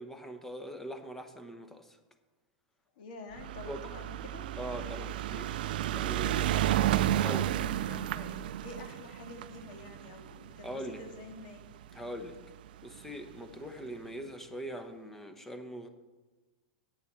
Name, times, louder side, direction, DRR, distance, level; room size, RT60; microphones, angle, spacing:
voice 1, 0.0-2.0 3.7-3.9 4.6-5.7 5.9-6.6 7.2-7.5 10.6-11.0 11.9-12.4 12.8-15.9, equal, 5° left, 8 dB, 0.9 m, -42 dB
voice 2, 3.0-4.5 7.5-11.6, left 3 dB, 65° left, 4 dB, 2.0 m, -48 dB
sound 1, 3.3-11.8 12.7-12.8 13.0-13.1 13.3-13.4, right 12 dB, 75° right, 0.4 m, -32 dB
8.5 x 6.9 x 7.3 m, 1.2 s
supercardioid pair, 145°, 5 cm